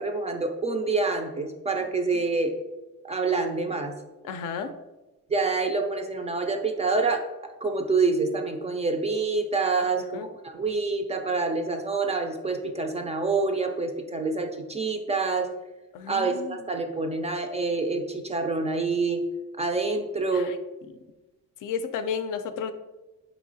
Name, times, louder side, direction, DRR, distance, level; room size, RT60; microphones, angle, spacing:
voice 1, 0.0-2.5 3.0-3.9 5.3-7.3 7.6-15.5 16.1-19.2 19.6-20.5, right 3 dB, 20° right, 4 dB, 0.3 m, -27 dB
voice 2, 4.2-4.7 10.1-10.3 15.9-16.6 20.3-20.6 21.6-22.7, left 6 dB, 65° left, 8 dB, 0.5 m, -32 dB
4.7 x 3.0 x 2.6 m, 1.1 s
cardioid pair, 100°, 34 cm